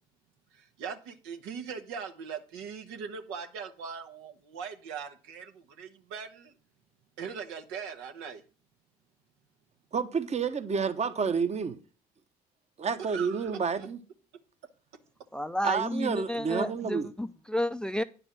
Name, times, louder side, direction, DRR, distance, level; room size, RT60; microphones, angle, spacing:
voice 1, 0.5-6.5 7.2-8.4 13.0-13.6, right 6 dB, 75° right, 1.3 m, -40 dB
voice 2, 9.9-11.8 12.8-14.0 15.6-17.1, right 5 dB, 35° right, 1.1 m, -29 dB
voice 3, 15.3-18.0, left 1 dB, 5° left, 0.6 m, -31 dB
9.7 x 5.3 x 6.1 m
hypercardioid pair, 60°, 20 cm